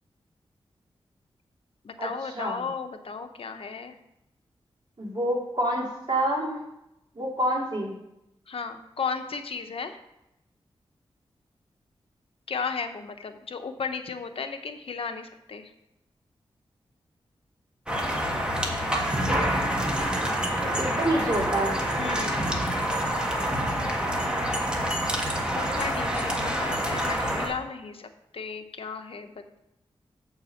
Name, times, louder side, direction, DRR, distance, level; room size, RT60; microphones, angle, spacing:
voice 1, 1.8-4.0 8.5-10.0 12.5-15.7 22.0-22.4 25.5-28.1 28.3-29.6, left 5 dB, 65° left, 7 dB, 0.8 m, -35 dB
voice 2, 5.0-6.6 7.2-8.0 20.6-21.8, right 1 dB, 45° right, -3 dB, 2.6 m, -27 dB
sound 1, 17.9-27.5, equal, 10° right, 1.5 m, -27 dB
7.8 x 4.6 x 6.5 m, 0.87 s
wide cardioid pair, 80°, 10 cm